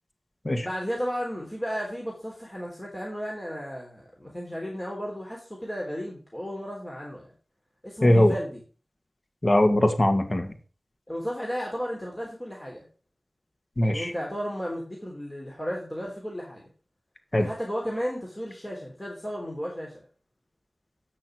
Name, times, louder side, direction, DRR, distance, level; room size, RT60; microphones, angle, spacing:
voice 1, 0.6-7.3 7.8-8.6 11.1-12.9 13.8-16.6 17.4-19.9, equal, 20° left, -2 dB, 3.5 m, -34 dB
voice 2, 8.0-8.3 9.4-10.5 13.8-14.1 17.3-17.5, left 1 dB, 40° left, 6 dB, 2.0 m, -20 dB
8.8 x 6.6 x 6.1 m, 0.39 s
wide cardioid pair, 45°, 0 cm